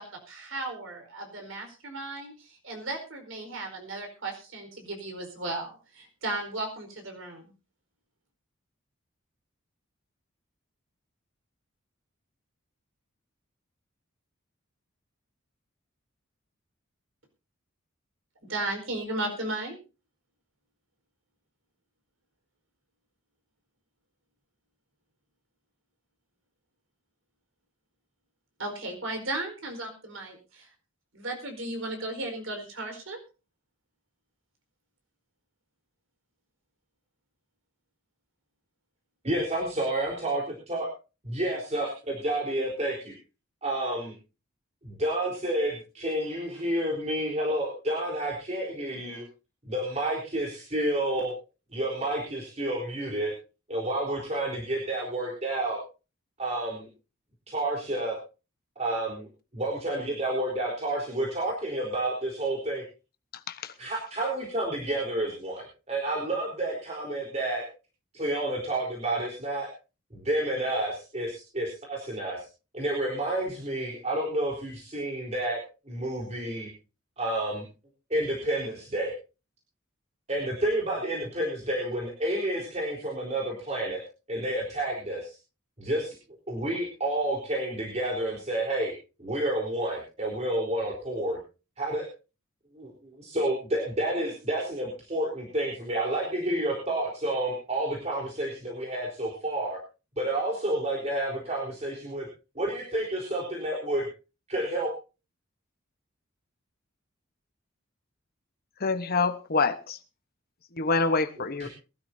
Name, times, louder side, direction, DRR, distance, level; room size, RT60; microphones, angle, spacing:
voice 1, 0.0-7.4 18.4-19.8 28.6-30.7 31.1-33.2, right 2 dB, 65° right, 4.7 m, -35 dB
voice 2, 39.2-40.9 41.2-43.1 43.6-44.1 44.8-49.2 49.7-51.3 51.7-53.3 53.7-55.8 56.4-56.9 57.5-58.2 58.8-59.3 59.5-62.8 63.8-67.7 68.1-69.7 70.1-72.5 72.7-75.6 75.9-76.7 77.2-77.6 78.1-79.1 80.3-84.0 84.3-85.3 85.8-86.1 86.5-88.9 89.2-91.4 91.8-92.1 92.7-92.9 93.2-99.8 100.2-102.3 102.6-104.0 104.5-104.9 111.6-111.7, right 1 dB, 35° right, 4.0 m, -30 dB
voice 3, 108.8-110.0 110.8-111.7, left 4 dB, 45° left, 1.1 m, -26 dB
22.5 x 13.0 x 2.8 m
head